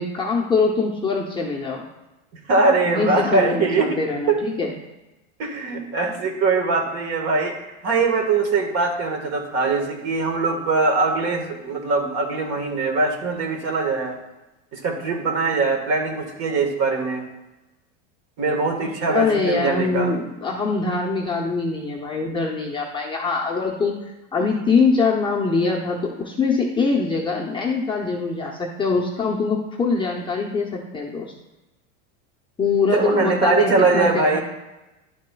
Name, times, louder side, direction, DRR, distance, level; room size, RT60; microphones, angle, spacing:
voice 1, 0.0-1.8 2.8-4.7 18.8-24.0 24.3-31.3 32.6-34.4, left 4 dB, 15° left, -2 dB, 0.7 m, -23 dB
voice 2, 2.5-4.0 4.3-4.4 5.4-7.5 7.8-14.2 14.7-17.2 18.4-20.1 32.9-34.4, right 3 dB, 40° right, 3 dB, 1.5 m, -22 dB
11.5 x 6.3 x 2.3 m, 1.0 s
supercardioid pair, 135°, 38 cm